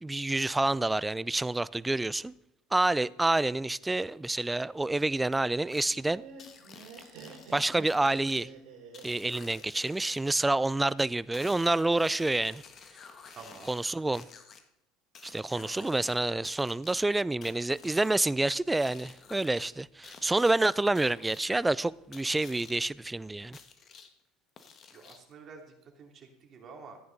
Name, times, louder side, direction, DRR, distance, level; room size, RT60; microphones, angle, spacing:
voice 1, 0.0-2.3 2.7-6.2 7.5-8.5 9.0-12.6 13.7-14.3 15.2-23.6, right 2 dB, 10° right, 0.4 m, -28 dB
sound 1, 5.7-5.9 6.4-8.4 8.9-10.4 11.3-14.6 15.1-16.2 16.4-18.2 18.7-19.7 20.0-20.5 20.9-21.4 22.1-22.8 23.5-24.1 24.6-25.3, left 6 dB, 40° left, 1.5 m, -51 dB
Laughter, 5.8-10.9, right 5 dB, 60° right, 3.0 m, -49 dB
voice 2, 13.4-13.8 15.5-16.1 24.9-27.0, right 5 dB, 45° right, 3.0 m, -50 dB
14.0 x 9.5 x 4.0 m
hypercardioid pair, 80°, 0 cm